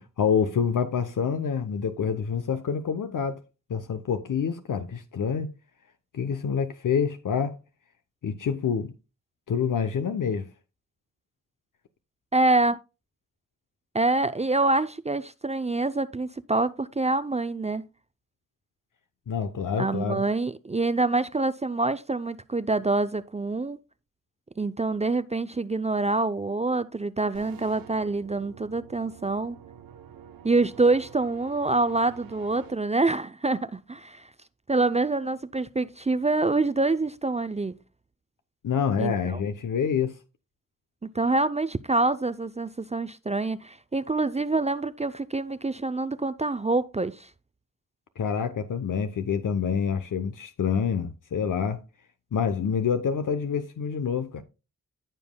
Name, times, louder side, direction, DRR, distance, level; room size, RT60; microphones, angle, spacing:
voice 1, 0.0-3.4 3.7-5.5 6.1-7.6 8.2-8.9 9.5-10.5 19.3-20.2 38.6-40.2 48.2-51.8 52.3-54.4, left 6 dB, 65° left, 0.8 m, -27 dB
voice 2, 12.3-12.8 13.9-17.9 19.8-23.8 24.6-29.6 30.4-34.3 34.7-37.8 39.0-39.1 41.0-47.3, right 3 dB, 20° right, 0.5 m, -26 dB
sound 1, 27.3-32.7, right 9 dB, 90° right, 0.9 m, -48 dB
14.5 x 5.4 x 2.2 m
cardioid pair, 50°, 34 cm